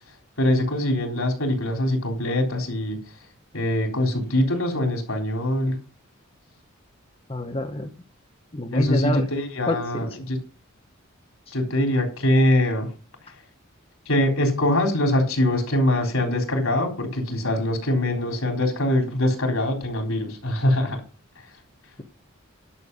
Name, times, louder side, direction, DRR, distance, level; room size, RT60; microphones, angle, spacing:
voice 1, 0.4-3.0 3.5-5.7 8.7-10.4 11.5-12.9 14.1-21.0, left 1 dB, 75° left, 2 dB, 3.8 m, -23 dB
voice 2, 7.3-7.9 8.5-9.2 9.7-9.8, left 1 dB, 25° left, 3 dB, 1.0 m, -26 dB
11.5 x 7.0 x 5.4 m, 0.37 s
head